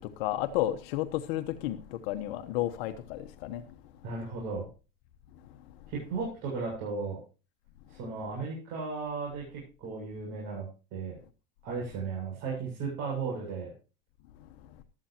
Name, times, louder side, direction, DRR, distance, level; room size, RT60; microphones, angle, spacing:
voice 1, 0.2-3.6, left 14 dB, 75° left, 1.2 m, -32 dB
voice 2, 4.0-4.7 5.9-7.2 7.9-10.7 10.9-11.2 11.6-13.7, right 4 dB, 65° right, 7.7 m, -35 dB
15.0 x 13.0 x 2.9 m
supercardioid pair, 130°, 29 cm